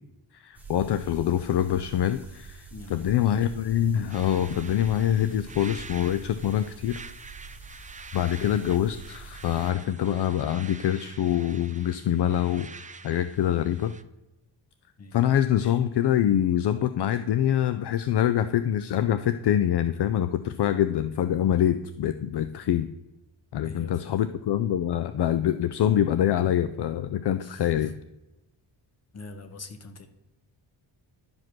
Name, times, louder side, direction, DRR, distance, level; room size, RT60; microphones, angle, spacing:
voice 1, 0.3-7.0 8.1-13.9 15.1-22.9 23.5-27.9, left 10 dB, 60° left, 11 dB, 0.5 m, -25 dB
sound 1, 0.5-9.7, right 4 dB, 5° right, 1.5 m, -46 dB
voice 2, 2.7-3.3 15.0-15.2 23.6-24.2 27.4-27.9 29.1-30.1, left 3 dB, 35° left, 7 dB, 1.2 m, -43 dB
sound 2, 4.1-14.0, right 4 dB, 20° right, 0.3 m, -46 dB
11.5 x 5.2 x 6.0 m, 0.94 s
wide cardioid pair, 145°, 47 cm